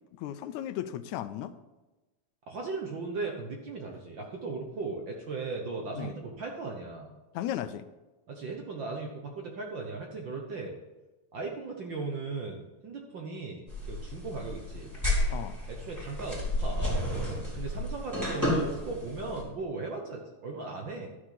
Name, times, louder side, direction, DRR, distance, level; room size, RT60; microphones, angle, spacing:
voice 1, 0.2-1.5 6.0-6.1 7.3-7.9 15.3-15.6, left 11 dB, 85° left, 12 dB, 2.0 m, -35 dB
voice 2, 2.5-7.1 8.3-10.8 11.3-12.6 12.8-14.9 15.7-17.0 17.5-21.1, right 3 dB, 60° right, 1 dB, 1.3 m, -37 dB
sound 1, 13.7-19.4, left 1 dB, 5° right, 3.4 m, -31 dB
12.0 x 6.4 x 5.8 m, 1.1 s
omnidirectional pair, 3.3 m